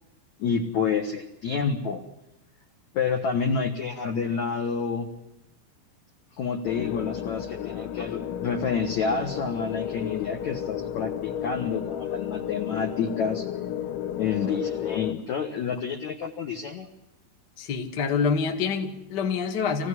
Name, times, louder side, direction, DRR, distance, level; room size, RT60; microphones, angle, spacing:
voice 1, 0.4-2.0 2.9-5.1 6.4-13.5 14.2-16.9, left 5 dB, 65° left, 3 dB, 1.8 m, -28 dB
sound 1, 6.7-15.1, left 10 dB, 85° left, 3.7 m, -33 dB
voice 2, 17.6-19.9, left 5 dB, 50° left, 4 dB, 1.3 m, -26 dB
25.0 x 16.0 x 9.9 m, 0.91 s
omnidirectional pair, 5.3 m